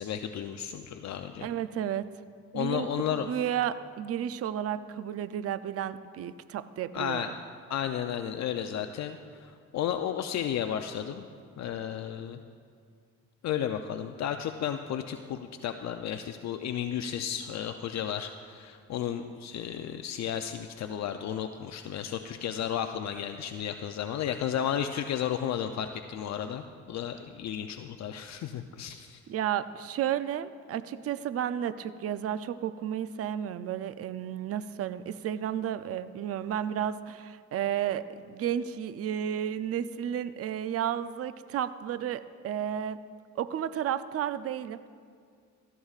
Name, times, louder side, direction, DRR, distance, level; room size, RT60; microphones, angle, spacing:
voice 1, 0.0-1.5 2.5-3.3 6.9-7.3 7.7-11.3 11.6-12.4 13.4-29.2, left 9 dB, 65° left, 7 dB, 0.5 m, -33 dB
voice 2, 1.4-2.1 2.5-7.3 29.3-43.0 43.4-44.9, right 10 dB, 50° right, 13 dB, 0.5 m, -32 dB
16.5 x 14.0 x 2.4 m, 2.1 s
cardioid pair, 90°, 30 cm